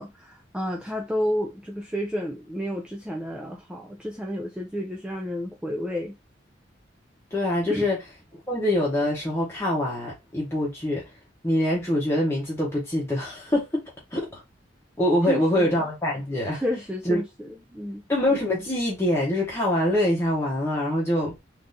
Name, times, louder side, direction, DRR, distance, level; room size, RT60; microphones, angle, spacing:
voice 1, 0.0-6.2 7.7-7.9 15.3-15.8 16.5-18.0, equal, 5° right, 0.4 m, -31 dB
voice 2, 7.3-8.0 8.5-11.0 11.4-13.8 14.1-14.4 15.0-16.6 17.0-17.2 18.1-21.4, left 1 dB, 15° left, 0.9 m, -24 dB
3.5 x 2.5 x 2.6 m
head